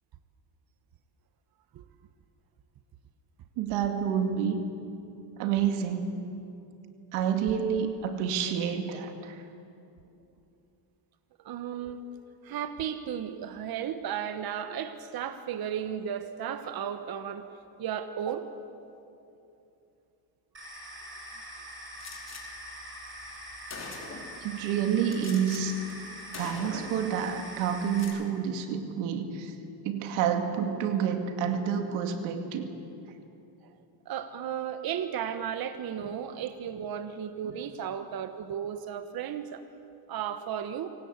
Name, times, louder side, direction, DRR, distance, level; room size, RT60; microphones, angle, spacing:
voice 1, 3.6-4.6 5.4-6.2 7.1-9.4 24.3-25.8 26.4-29.5 29.8-32.7 37.4-37.6, right 7 dB, 90° right, 6 dB, 2.3 m, -29 dB
voice 2, 11.4-12.1 12.4-18.5 34.0-39.6 40.1-40.9, right 9 dB, 50° right, 9 dB, 1.3 m, -34 dB
sound 1, 20.5-28.0, equal, 25° right, 6.5 m, -43 dB
Gunshot gunfire, 22.0-22.4 23.2-23.3 23.7-24.4 25.1-25.6 25.9-26.1 26.3-27.0 27.8-28.2, left 4 dB, 35° left, 4.0 m, -42 dB
26.0 x 17.5 x 8.2 m, 2.7 s
cardioid pair, 110°, 47 cm